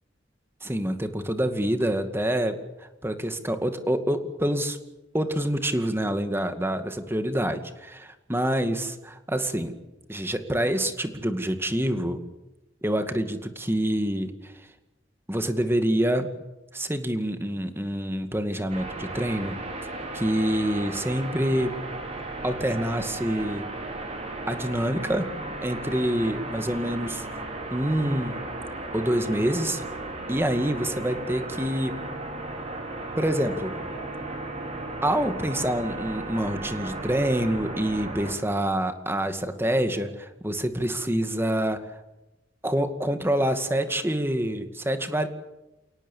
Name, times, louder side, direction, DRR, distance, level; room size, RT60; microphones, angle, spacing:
voice 1, 0.6-4.8 5.1-9.8 10.1-12.2 12.8-14.5 15.3-16.3 16.7-19.6 20.1-21.8 22.4-23.6 24.5-25.3 25.6-27.4 27.7-28.3 28.9-29.8 30.3-31.9 33.2-33.9 35.0-42.0 42.6-45.3, right 1 dB, 15° right, 8 dB, 2.2 m, -26 dB
sound 1, 18.7-38.3, right 2 dB, 35° right, 5.5 m, -35 dB
29.0 x 18.0 x 7.4 m, 0.98 s
head